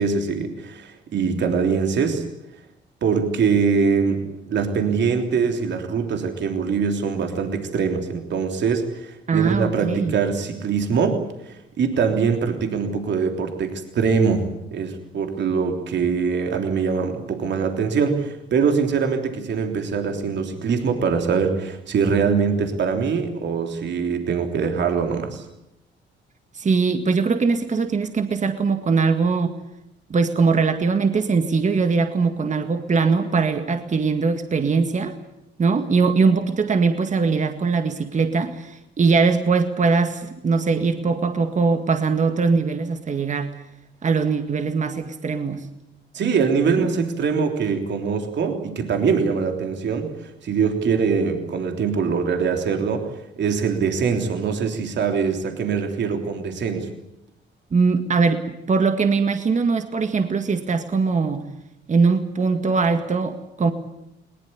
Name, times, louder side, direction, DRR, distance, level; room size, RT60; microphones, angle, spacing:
voice 1, 0.0-2.2 3.0-11.2 11.5-14.5 14.7-25.4 46.1-53.1 53.4-56.9, right 5 dB, 65° right, 4 dB, 3.4 m, -23 dB
voice 2, 9.3-10.2 26.5-29.6 30.1-35.1 35.6-43.5 44.0-45.7 46.8-46.9 57.7-58.4 58.7-61.5 61.9-63.7, right 4 dB, 40° right, 7 dB, 2.0 m, -21 dB
21.0 x 19.5 x 9.7 m, 0.85 s
cardioid pair, 90°, 20 cm